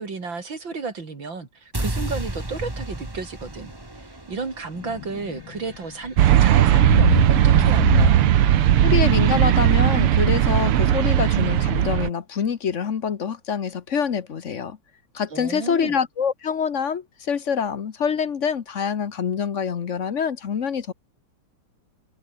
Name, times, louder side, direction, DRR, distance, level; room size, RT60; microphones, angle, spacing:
voice 1, 0.0-8.2 15.3-15.9, right 4 dB, 60° right, 4.2 m, -33 dB
sound 1, 1.7-7.9, right 1 dB, 10° right, 2.1 m, -34 dB
sound 2, 4.8-6.4 6.8-12.1, left 12 dB, 65° left, 1.4 m, -30 dB
sound 3, 6.2-12.1, right 12 dB, 85° right, 2.0 m, -17 dB
voice 2, 8.8-14.8 15.1-20.9, left 7 dB, 45° left, 1.1 m, -25 dB
omnidirectional pair, 2.4 m